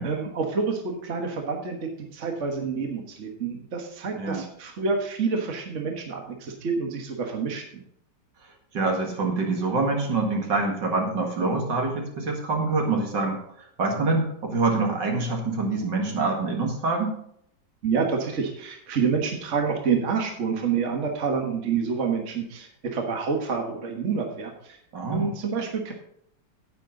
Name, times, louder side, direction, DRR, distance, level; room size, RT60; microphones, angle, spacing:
voice 1, 0.0-7.8 17.8-24.8 25.1-25.9, right 5 dB, 45° right, 2 dB, 1.6 m, -28 dB
voice 2, 4.1-4.5 8.4-17.2 24.9-25.3, right 3 dB, 70° right, 1 dB, 2.6 m, -26 dB
10.0 x 9.1 x 3.9 m, 0.70 s
omnidirectional pair, 1.9 m